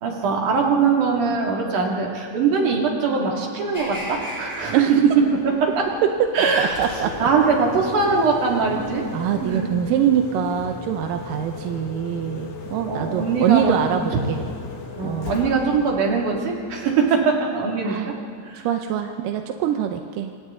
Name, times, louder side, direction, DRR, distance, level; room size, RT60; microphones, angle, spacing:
voice 1, 0.0-4.8 5.4-5.8 6.3-6.8 7.2-9.1 9.4-9.7 12.9-13.8 14.1-14.2 15.0-18.1 18.5-18.6, right 5 dB, 55° right, -1 dB, 3.6 m, -22 dB
sound 1, 3.7-9.5, equal, 5° right, 2.2 m, -37 dB
voice 2, 6.0-7.3 9.1-14.5 15.0-15.3 17.8-18.1 18.6-20.3, right 9 dB, 75° right, 5 dB, 2.1 m, -24 dB
Engine, 6.6-17.5, left 4 dB, 65° left, 3.6 m, -36 dB
27.0 x 26.0 x 3.8 m, 2.3 s
omnidirectional pair, 4.5 m